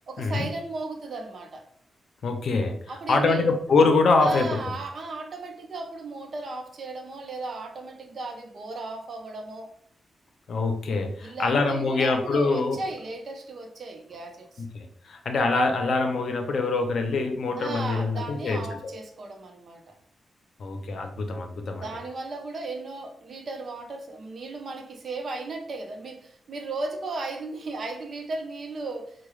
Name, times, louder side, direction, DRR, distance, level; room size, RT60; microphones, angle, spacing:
voice 1, 0.1-1.7 2.9-3.5 4.2-9.7 11.2-14.6 17.6-19.9 21.7-29.1, right 3 dB, 55° right, 3 dB, 0.7 m, -36 dB
voice 2, 2.2-2.8 3.1-4.5 10.5-12.8 14.6-18.6 20.6-21.8, left 3 dB, 65° left, 5 dB, 0.6 m, -24 dB
4.5 x 2.2 x 3.1 m, 0.63 s
cardioid pair, 110°, 0 cm